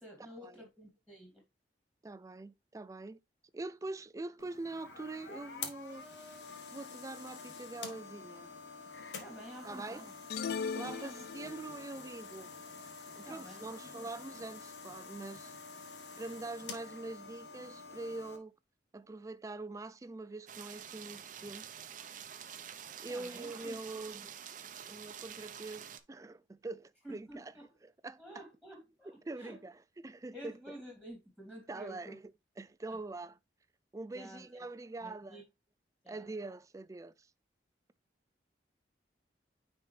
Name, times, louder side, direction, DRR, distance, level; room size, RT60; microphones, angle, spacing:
voice 1, 0.0-1.4 9.2-10.1 10.9-11.5 13.2-14.4 23.1-23.8 24.2-24.3 27.0-27.6 28.2-29.6 30.3-32.2 32.9-33.0 34.1-34.7 35.0-35.4 36.0-36.3, right 1 dB, 5° left, 2.6 m, -51 dB
voice 2, 2.0-3.2 3.5-6.1 6.7-8.5 9.5-10.1 10.7-12.5 13.1-15.5 16.2-18.5 18.9-21.7 23.0-24.3 24.9-27.5 27.8-28.4 29.2-30.7 31.7-32.2 32.6-33.4 33.9-35.4 36.1-37.3, right 2 dB, 20° right, 0.3 m, -44 dB
sound 1, 4.4-18.4, left 5 dB, 80° left, 1.3 m, -48 dB
sound 2, 10.3-11.8, left 6 dB, 60° left, 0.5 m, -38 dB
sound 3, 20.5-26.0, right 8 dB, 45° right, 0.7 m, -48 dB
9.2 x 4.2 x 3.2 m
head